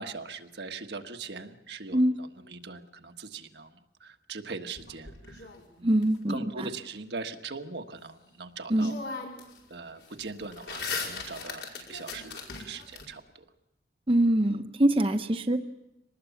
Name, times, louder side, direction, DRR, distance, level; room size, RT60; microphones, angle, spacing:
voice 1, 0.0-5.5 5.8-5.9 6.3-9.0 9.7-13.2, right 4 dB, 80° right, 5 dB, 1.5 m, -41 dB
sound 1, 4.8-6.0 8.3-8.4 8.8-9.6 9.9-13.0, left 4 dB, 85° left, 5.3 m, -38 dB
voice 2, 5.8-6.7 8.7-9.0 14.1-15.6, right 1 dB, 30° right, 6 dB, 0.9 m, -24 dB
24.5 x 20.0 x 7.1 m, 0.90 s
head